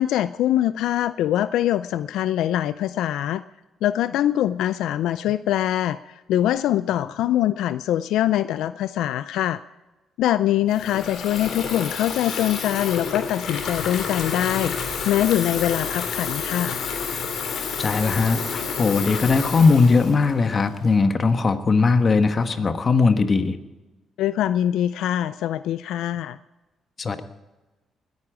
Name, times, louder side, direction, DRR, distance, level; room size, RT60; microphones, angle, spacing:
voice 1, 0.0-3.4 3.8-9.6 10.2-16.8 24.2-26.4, left 12 dB, 85° left, 14 dB, 0.3 m, -23 dB
Water tap faucet / Fill (with liquid), 10.7-20.9, left 6 dB, 65° left, 2.7 m, -30 dB
voice 2, 17.8-23.6 27.0-27.2, left 4 dB, 40° left, 9 dB, 1.2 m, -19 dB
20.0 x 9.6 x 5.0 m, 1.1 s
cardioid pair, 90°, 0 cm